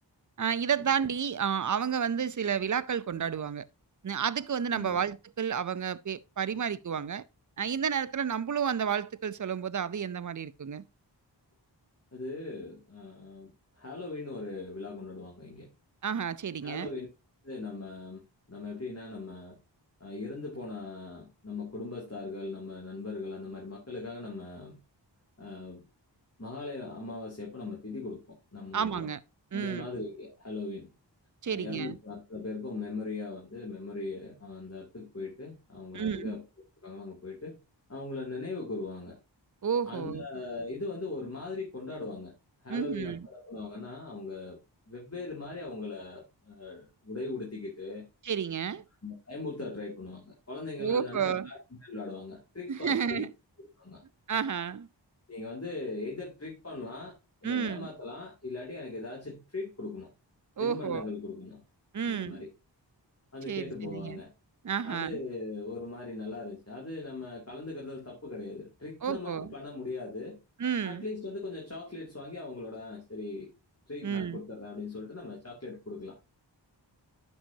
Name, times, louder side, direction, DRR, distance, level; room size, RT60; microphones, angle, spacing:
voice 1, 0.4-3.6 4.0-7.2 7.6-10.8 16.0-16.9 28.7-29.2 29.5-29.9 31.4-32.0 35.9-36.4 39.6-40.2 42.7-43.3 48.2-48.8 50.8-51.5 52.7-53.3 54.3-54.9 57.4-57.9 60.6-61.1 61.9-62.4 63.5-64.2 64.6-65.2 69.0-69.5 70.6-71.0 74.0-74.4, right 7 dB, 45° right, 0.6 m, -31 dB
voice 2, 12.1-15.7 16.6-17.1 17.4-18.2 18.5-19.6 20.0-24.8 25.4-25.8 26.4-29.1 29.5-30.9 31.5-36.4 36.8-37.6 37.9-39.2 39.8-42.3 42.6-44.6 44.9-48.1 49.0-53.3 53.6-54.0 55.3-57.1 57.4-60.1 60.6-61.6 62.0-62.5 63.3-64.3 64.8-70.4 70.8-73.5 73.9-76.1, left 3 dB, 35° left, 2.8 m, -39 dB
11.0 x 5.9 x 2.8 m
wide cardioid pair, 45°, 44 cm